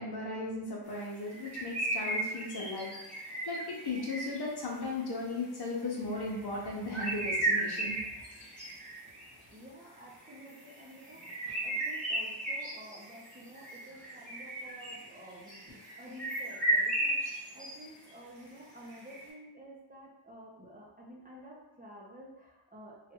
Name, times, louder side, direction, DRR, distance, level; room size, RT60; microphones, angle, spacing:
voice 1, 0.0-2.9 3.5-8.0, left 2 dB, 55° left, -2 dB, 0.8 m, -36 dB
sound 1, 1.3-4.6 6.1-6.4 6.7-9.3 10.1-17.8 18.0-18.1 18.9-19.3, right 1 dB, 5° left, 1.1 m, -35 dB
voice 2, 9.5-23.1, equal, 20° right, -5 dB, 0.6 m, -51 dB
3.2 x 2.4 x 2.9 m, 0.98 s
wide cardioid pair, 100°, 48 cm